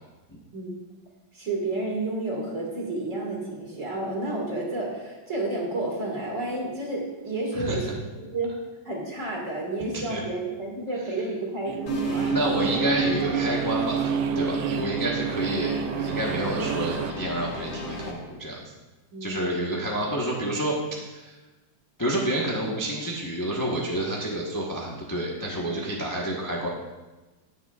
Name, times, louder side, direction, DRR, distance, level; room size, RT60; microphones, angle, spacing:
voice 1, 1.3-8.5 8.8-12.4 19.1-19.4, right 2 dB, 40° right, -2 dB, 2.4 m, -31 dB
sound 1, 11.7-17.1, right 7 dB, 80° right, 1.3 m, -28 dB
sound 2, 11.9-18.1, left 1 dB, 55° left, 1.5 m, -36 dB
voice 2, 12.3-18.6 19.2-21.3 22.0-26.7, right 1 dB, 15° left, -4 dB, 0.9 m, -29 dB
19.0 x 6.9 x 2.4 m, 1.2 s
omnidirectional pair, 2.1 m